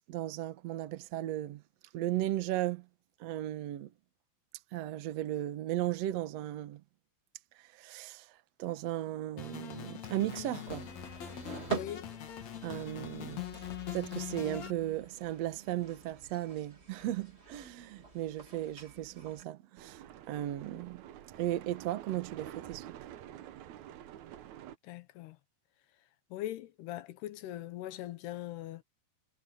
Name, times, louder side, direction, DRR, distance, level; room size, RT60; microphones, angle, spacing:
voice 1, 0.1-1.6 1.9-2.8 3.2-3.9 4.7-6.8 7.7-8.3 8.6-10.9 12.6-20.0 20.3-21.0 21.4-22.9, right 13 dB, 70° right, 1.6 m, -36 dB
sound 1, 9.4-14.7, left 10 dB, 50° left, 2.6 m, -42 dB
sound 2, 10.7-19.4, right 5 dB, 25° right, 1.4 m, -45 dB
voice 2, 11.7-12.1 24.8-25.4 26.3-28.8, left 13 dB, 80° left, 3.0 m, -41 dB
sound 3, 19.8-24.8, right 11 dB, 85° right, 1.6 m, -48 dB
omnidirectional pair, 4.7 m